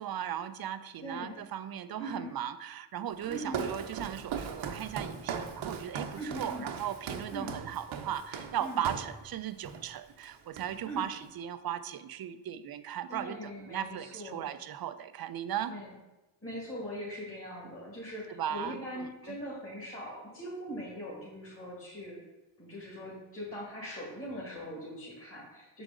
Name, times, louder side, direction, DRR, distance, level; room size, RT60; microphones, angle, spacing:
voice 1, 0.0-15.7 18.3-19.4, right 10 dB, 50° right, 12 dB, 0.5 m, -37 dB
voice 2, 1.0-1.4 2.0-2.3 3.3-3.7 6.1-6.7 7.3-7.6 8.6-8.8 10.8-11.1 13.1-14.5 15.6-15.9 16.4-22.2 22.6-25.8, equal, 25° left, -6 dB, 2.3 m, -41 dB
Walk footsteps, 3.2-9.2 9.6-9.9 10.2-11.0, right 6 dB, 65° right, 0.8 m, -39 dB
6.1 x 4.9 x 3.7 m, 1.0 s
cardioid pair, 60°, 50 cm